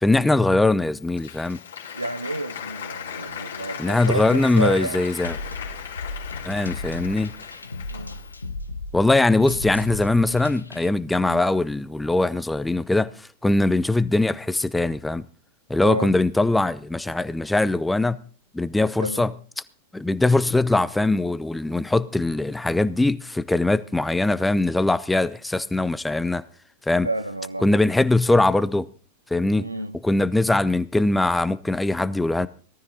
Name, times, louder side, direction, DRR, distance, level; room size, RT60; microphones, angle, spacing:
voice 1, 0.0-1.6 3.8-5.4 6.4-7.3 8.9-13.1 13.4-15.2 15.7-18.2 18.5-19.3 19.9-26.4 26.9-27.1 27.6-28.9 29.3-29.7 30.0-32.5, left 2 dB, 5° left, 0.7 m, -21 dB
Applause, 0.8-8.4, left 8 dB, 65° left, 2.8 m, -37 dB
voice 2, 1.9-5.0 7.9-8.2 11.2-11.5 15.8-16.1 19.0-19.3 27.0-27.7 29.6-30.0, right 1 dB, 85° right, 0.9 m, -30 dB
sound 1, 5.2-10.9, left 3 dB, 80° left, 1.1 m, -35 dB
18.0 x 13.0 x 4.0 m
figure-of-eight pair, 90°, 0 cm